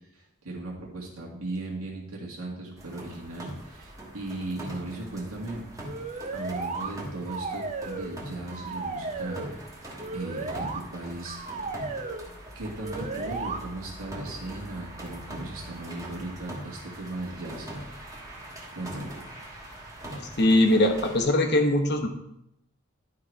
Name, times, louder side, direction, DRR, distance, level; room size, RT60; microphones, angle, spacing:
voice 1, 0.1-5.6 6.3-11.4 12.5-18.2 18.7-19.1, right 2 dB, 90° right, -2 dB, 2.0 m, -37 dB
sound 1, 2.8-21.2, right 1 dB, 15° right, 1.4 m, -42 dB
sound 2, 5.8-6.9 7.3-8.2 8.5-9.5 10.0-10.8 11.2-12.2 12.8-13.6, right 3 dB, 30° right, 0.6 m, -34 dB
voice 2, 20.4-22.1, left 1 dB, 50° left, 3 dB, 1.1 m, -21 dB
11.5 x 3.9 x 4.7 m, 0.82 s
head